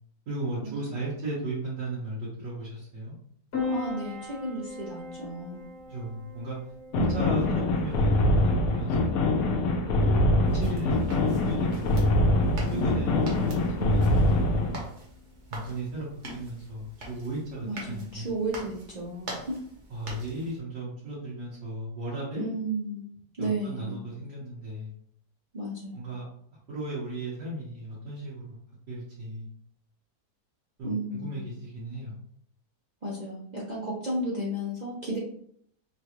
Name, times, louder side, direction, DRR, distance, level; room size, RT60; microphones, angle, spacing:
voice 1, 0.3-3.1 5.9-6.6 7.0-9.3 10.0-11.0 11.2-12.0 12.7-14.7 15.5-18.3 19.9-22.5 23.4-24.9 25.9-26.3 26.7-28.6 28.9-29.5 30.8-32.1, right 2 dB, 90° right, -8 dB, 1.7 m, -36 dB
Piano, 3.5-18.5, left 3 dB, 50° left, 1.2 m, -42 dB
voice 2, 3.7-5.6 12.7-13.2 17.6-19.6 22.4-23.0 23.4-24.0 25.5-26.0 30.8-31.4 33.0-35.2, right 1 dB, 70° right, -6 dB, 0.4 m, -33 dB
sound 1, 6.9-14.8, left 1 dB, 70° left, 1.0 m, -24 dB
sound 2, 10.4-20.6, right 1 dB, 50° right, 1.1 m, -44 dB
3.7 x 2.4 x 2.9 m, 0.65 s
omnidirectional pair, 1.7 m